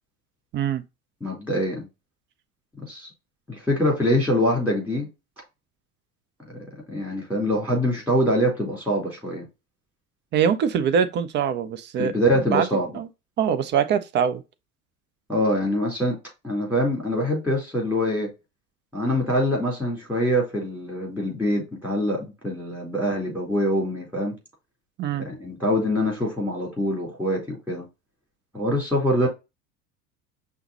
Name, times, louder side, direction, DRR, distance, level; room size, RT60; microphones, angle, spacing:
voice 1, 1.2-1.9 2.8-3.1 3.5-5.1 6.5-6.6 6.9-9.4 12.0-12.9 15.3-16.2 16.4-18.3 18.9-24.4 25.2-27.9 28.5-29.3, equal, 5° right, 2.8 m, -24 dB
voice 2, 10.3-12.1 12.5-12.7 12.9-13.1 13.4-14.4 25.0-25.3, right 7 dB, 25° right, 0.4 m, -23 dB
5.7 x 2.1 x 3.9 m
figure-of-eight pair, 75°, 45 cm